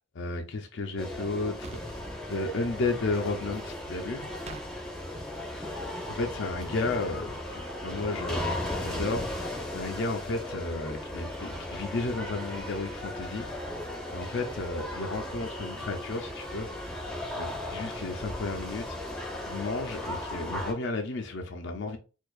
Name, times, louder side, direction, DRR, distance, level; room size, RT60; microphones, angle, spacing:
voice 1, 0.1-1.8 2.3-4.3 6.1-13.5 14.1-16.7 17.3-19.0 19.5-22.0, left 3 dB, 60° left, 0.5 m, -33 dB
sound 1, 1.0-20.7, left 1 dB, 5° left, 0.8 m, -36 dB
sound 2, 1.6-2.2 4.5-4.7, right 3 dB, 30° right, 0.3 m, -43 dB
4.4 x 2.5 x 2.4 m
head